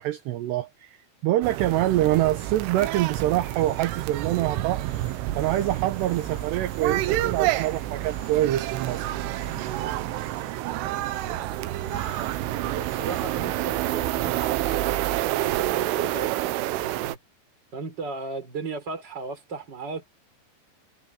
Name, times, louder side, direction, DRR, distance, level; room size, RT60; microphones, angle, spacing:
voice 1, 0.0-4.8 5.4-9.1, right 14 dB, 70° right, 2.9 m, -25 dB
sound 1, 1.4-17.2, right 15 dB, 90° right, 3.4 m, -28 dB
sound 2, 3.3-14.7, left 8 dB, 55° left, 2.6 m, -49 dB
voice 2, 11.3-12.0 12.6-17.2 17.7-20.0, right 4 dB, 25° right, 4.1 m, -36 dB
omnidirectional pair, 5.5 m